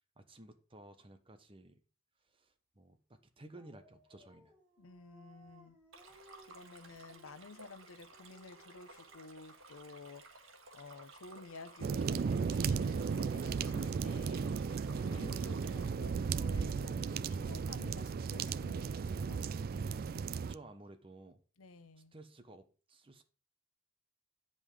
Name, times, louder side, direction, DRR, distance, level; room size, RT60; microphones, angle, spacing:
voice 1, 0.2-1.8 2.3-4.5 15.1-15.3 19.8-21.4 22.1-23.2, right 2 dB, 25° right, 1.0 m, -55 dB
Dog, 3.5-9.3 12.5-17.1, right 2 dB, 5° right, 1.8 m, -64 dB
voice 2, 4.8-5.8 6.4-14.5 15.1-19.4 21.6-22.1, left 3 dB, 90° left, 0.8 m, -53 dB
Stream, 5.9-15.9, right 3 dB, 85° right, 1.6 m, -57 dB
sound 1, 11.8-20.5, right 5 dB, 45° right, 0.3 m, -35 dB
9.5 x 5.3 x 4.9 m
head